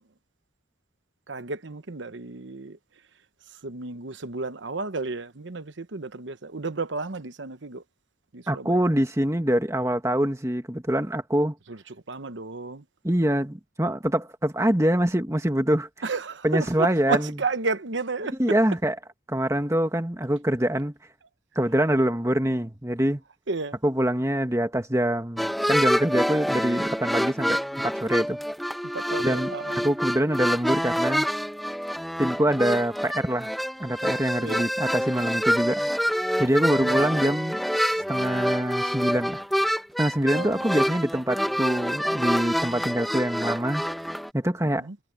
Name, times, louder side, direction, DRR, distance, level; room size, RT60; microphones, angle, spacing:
voice 1, 1.3-2.8 3.6-7.8 8.3-8.8 11.7-11.8 12.1-12.8 16.0-18.4 23.5-23.8 28.8-29.9 34.4-34.7 36.7-37.3 40.3-40.6 44.7-45.0, right 3 dB, 70° right, 1.0 m, -32 dB
voice 2, 8.5-11.5 13.0-15.9 16.4-17.3 18.4-18.9 19.3-20.9 21.5-23.2 23.8-28.4 29.2-29.5 29.8-31.3 32.2-33.5 33.8-37.6 37.9-39.4 40.0-43.8 44.3-44.9, right 1 dB, 15° right, 1.5 m, -25 dB
sound 1, 25.4-44.3, equal, ahead, 1.4 m, -27 dB
head